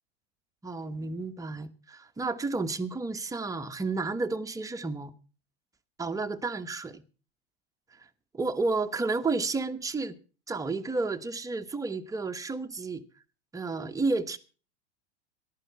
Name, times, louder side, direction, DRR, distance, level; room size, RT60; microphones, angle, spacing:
voice 1, 0.6-5.1 6.0-7.0 8.3-10.2 10.5-13.0 13.5-14.4, right 3 dB, 10° right, 1.1 m, -31 dB
14.5 x 11.5 x 5.8 m
hypercardioid pair, 100°, 33 cm